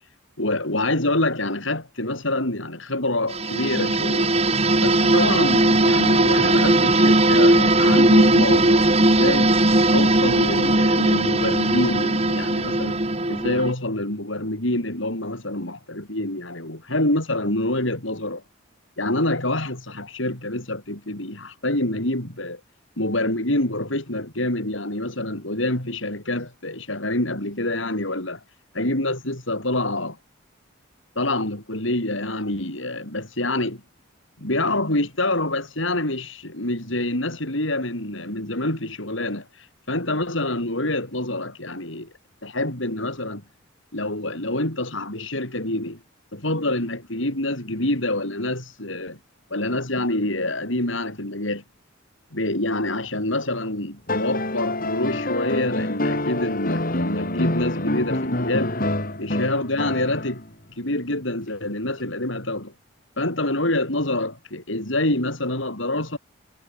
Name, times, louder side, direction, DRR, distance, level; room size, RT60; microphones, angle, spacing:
voice 1, 0.4-4.3 4.8-9.5 9.9-13.0 13.3-18.4 19.0-22.6 23.0-28.4 28.7-30.2 31.1-33.8 34.4-42.1 42.4-43.4 43.9-46.0 46.3-49.2 49.5-51.6 52.3-58.7 59.2-60.4 60.7-62.7 63.2-66.2, left 1 dB, 70° left, 6.4 m, -26 dB
sound 1, 3.3-13.7, right 2 dB, 30° right, 3.9 m, -18 dB
sound 2, 54.1-60.5 62.0-62.1, left 1 dB, 45° left, 3.6 m, -26 dB
head